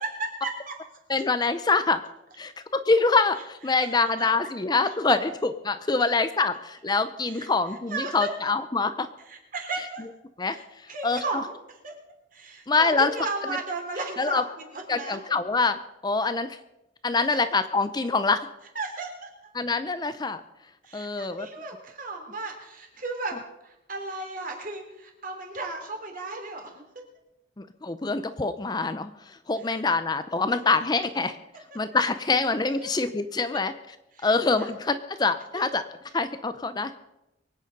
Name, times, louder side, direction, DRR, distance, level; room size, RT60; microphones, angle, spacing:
voice 1, 0.0-0.7 3.4-4.3 5.1-5.2 7.3-7.5 7.9-8.3 9.3-10.0 10.4-11.9 12.3-15.2 17.3-17.4 18.8-19.5 20.8-26.8 29.6-29.8 30.7-30.8 31.2-31.3 31.7-31.8 32.8-32.9 34.1-34.7 35.5-35.6, right 3 dB, 45° right, 2 dB, 3.3 m, -35 dB
voice 2, 1.1-2.0 2.4-5.3 5.6-9.1 10.4-10.6 11.0-11.2 12.7-13.1 14.2-14.4 14.9-16.5 17.0-18.4 19.5-20.4 20.9-21.5 27.8-29.1 29.5-31.4 31.8-33.7 34.2-35.8 36.1-36.9, left 3 dB, 20° left, 10 dB, 0.5 m, -25 dB
23.5 x 9.1 x 5.3 m, 0.92 s
head